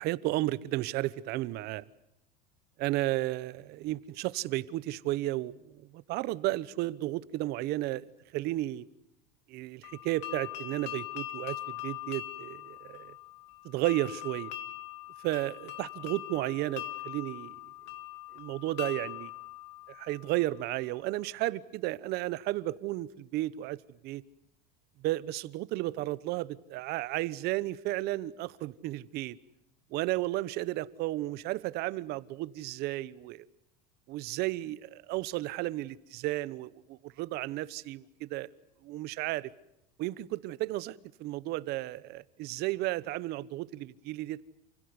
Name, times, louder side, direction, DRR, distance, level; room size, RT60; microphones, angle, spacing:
voice 1, 0.0-1.8 2.8-8.8 9.5-13.1 13.6-14.5 15.2-17.5 18.3-19.3 19.9-23.8 24.0-24.2 25.0-29.4 29.9-33.5 34.1-38.5 38.8-39.5 40.0-44.4, right 17 dB, 50° right, 18 dB, 1.0 m, -33 dB
sound 1, 9.8-20.6, left 16 dB, 55° left, 2.2 m, -42 dB
29.0 x 16.5 x 9.7 m, 0.82 s
supercardioid pair, 150°, 21 cm